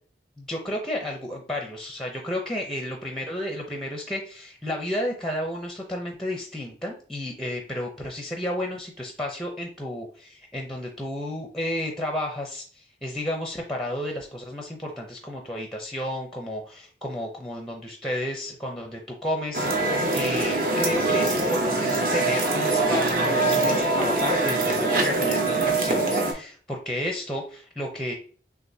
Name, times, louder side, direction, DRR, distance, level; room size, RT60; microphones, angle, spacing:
voice 1, 0.4-28.1, left 1 dB, ahead, 2 dB, 0.6 m, -32 dB
sound 1, 19.5-26.3, right 2 dB, 50° right, 0.9 m, -23 dB
6.4 x 2.5 x 2.7 m, 0.43 s
head